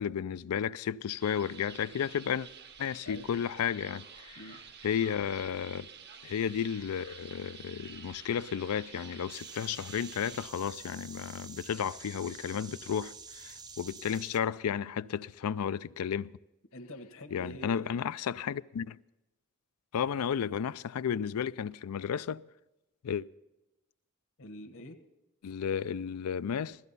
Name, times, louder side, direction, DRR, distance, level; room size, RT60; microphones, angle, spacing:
voice 1, 0.0-2.5 2.8-4.4 4.8-5.9 6.2-16.3 17.3-19.0 19.9-22.4 23.0-23.3 25.4-26.8, left 8 dB, 85° left, 0.4 m, -33 dB
sound 1, 1.2-10.5, right 7 dB, 50° right, 0.8 m, -50 dB
sound 2, 9.3-14.4, right 5 dB, 20° right, 0.5 m, -48 dB
voice 2, 16.7-17.9 24.4-25.0, left 1 dB, 65° left, 1.3 m, -46 dB
16.5 x 14.0 x 4.1 m
head